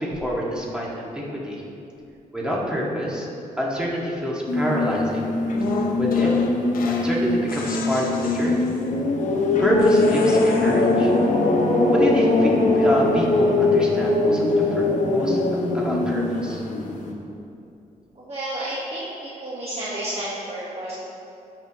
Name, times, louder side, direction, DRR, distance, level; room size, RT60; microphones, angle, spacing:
voice 1, 0.0-1.6 2.3-3.3 3.6-5.3 6.0-6.3 6.9-8.7 9.6-11.1 11.9-14.5 14.7-15.4 15.7-16.6, equal, 5° right, -5 dB, 2.1 m, -26 dB
sound 1, 4.5-17.1, left 2 dB, 60° left, 1.2 m, -21 dB
sound 2, 5.5-7.2 7.5-8.9 9.8-11.2, left 4 dB, 80° left, 0.9 m, -33 dB
voice 2, 18.2-20.9, right 1 dB, 45° right, -8 dB, 1.7 m, -31 dB
13.0 x 6.0 x 3.1 m, 2.6 s
cardioid pair, 80°, 15 cm